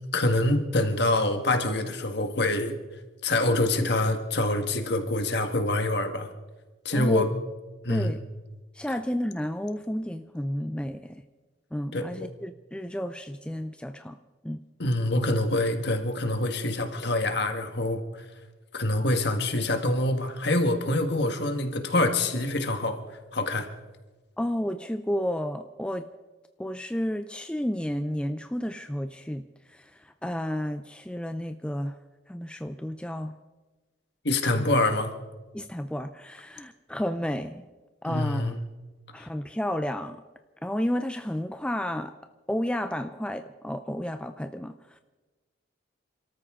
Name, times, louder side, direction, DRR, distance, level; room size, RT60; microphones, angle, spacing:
voice 1, 0.1-2.8 3.2-6.3 6.8-7.3 7.8-8.2 11.9-12.3 14.8-18.0 18.7-23.0 23.3-23.7 34.2-35.1 38.1-38.6, left 2 dB, 55° left, 6 dB, 1.6 m, -25 dB
voice 2, 6.9-7.3 7.9-8.2 8.7-11.2 11.7-14.2 14.4-14.6 24.4-26.1 26.6-32.0 32.3-33.4 34.5-34.6 35.5-37.6 38.0-38.5 39.1-40.2 40.6-42.1 42.5-45.0, equal, 5° left, 8 dB, 0.4 m, -31 dB
29.0 x 13.5 x 3.7 m, 1.2 s
head